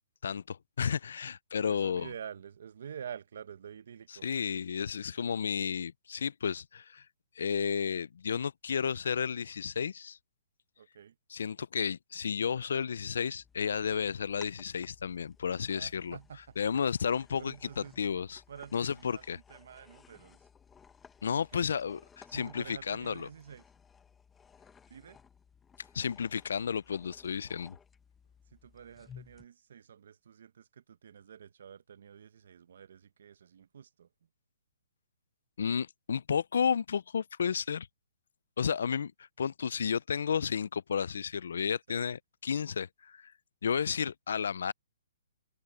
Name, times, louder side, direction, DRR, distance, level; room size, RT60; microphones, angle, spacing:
voice 1, 0.2-2.1 4.2-7.0 7.4-10.2 11.3-16.2 16.6-18.4 18.7-19.4 21.2-23.3 25.9-27.8 35.6-37.9 38.6-39.1 39.4-43.3 43.6-44.7, left 7 dB, 65° left, 0.3 m, -32 dB
voice 2, 1.6-4.3 10.8-11.1 15.7-16.6 17.4-18.0 18.5-20.4 21.4-21.7 22.3-23.6 24.9-25.2 28.5-34.1 41.9-42.1, right 8 dB, 55° right, 0.8 m, -48 dB
sound 1, 13.4-29.4, left 7 dB, 10° left, 0.8 m, -58 dB
hypercardioid pair, 175°, 0 cm